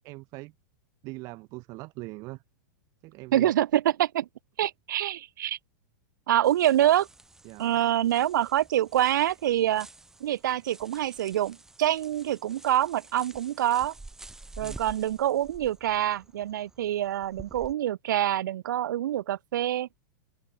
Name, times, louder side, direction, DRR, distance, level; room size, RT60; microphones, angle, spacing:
voice 1, 0.0-0.5 1.0-2.4 3.0-3.5 7.4-7.8 14.6-14.8, right 23 dB, 35° right, 1.2 m, -41 dB
voice 2, 3.3-4.3 4.6-5.6 6.3-7.1 7.6-9.9 10.2-13.9 14.6-19.9, right 12 dB, 80° right, 0.8 m, -26 dB
sound 1, 6.4-17.7, right 2 dB, 5° right, 0.9 m, -49 dB
open air
supercardioid pair, 160°, 10 cm